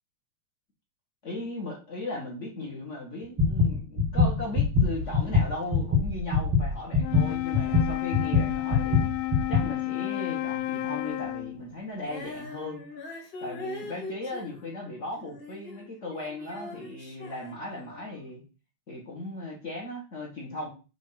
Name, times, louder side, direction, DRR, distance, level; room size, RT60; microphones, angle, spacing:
voice 1, 1.2-9.0 9.5-12.8 13.4-18.4 18.9-20.7, left 2 dB, 35° left, -1 dB, 1.2 m, -37 dB
sound 1, 3.4-9.7, left 4 dB, 10° right, 1.0 m, -24 dB
Wind instrument woodwind instrument, 6.9-11.7, left 17 dB, 90° left, 2.1 m, -31 dB
Female singing, 12.0-15.9 16.1-18.2, left 3 dB, 50° left, 3.7 m, -42 dB
7.7 x 3.1 x 5.7 m, 0.33 s
omnidirectional pair, 3.5 m